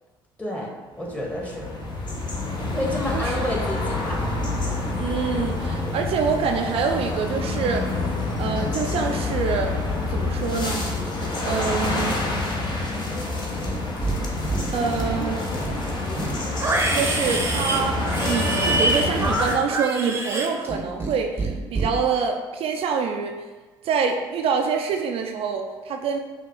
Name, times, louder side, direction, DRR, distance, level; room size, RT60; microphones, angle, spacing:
voice 1, 0.4-0.7 1.0-1.7 2.7-4.2 4.8-4.9 15.8-16.2, left 1 dB, 10° left, -2 dB, 1.5 m, -30 dB
sound 1, 1.1-19.5, left 2 dB, 40° left, 1.0 m, -27 dB
voice 2, 5.0-7.9 8.4-9.8 10.1-10.8 11.4-12.2 14.7-15.5 16.9-18.0 18.2-23.4 23.8-26.2, right 6 dB, 55° right, 3 dB, 0.4 m, -26 dB
Livestock farm animals working animals, 13.5-14.2 14.4-15.2 15.5-21.1 21.4-21.9, right 2 dB, 20° right, 0.8 m, -26 dB
5.3 x 2.5 x 3.8 m, 1.3 s
hypercardioid pair, 55°, 12 cm